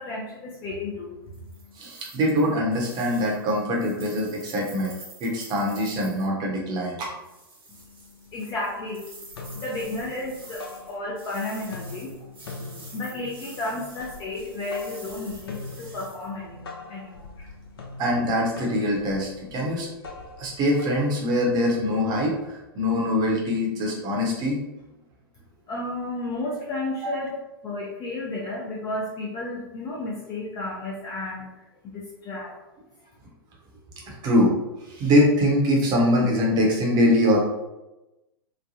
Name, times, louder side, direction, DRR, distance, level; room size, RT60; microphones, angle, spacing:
voice 1, 0.0-1.8 7.7-18.0 25.7-27.4 27.6-32.6, left 2 dB, 30° left, -4 dB, 0.6 m, -33 dB
sound 1, 1.3-6.3 7.2-16.3, right 2 dB, 70° right, 1.3 m, -48 dB
voice 2, 1.7-4.9 5.2-7.1 12.6-12.7 18.0-19.9 20.4-24.6 27.0-27.1 34.0-34.5 34.8-37.4, left 1 dB, 30° right, -1 dB, 0.9 m, -23 dB
sound 2, 7.8-7.9 8.2-8.9 9.2-11.4 11.6-21.8, left 3 dB, 75° left, 0.7 m, -42 dB
3.1 x 2.2 x 2.7 m, 0.98 s
figure-of-eight pair, 105°, 13 cm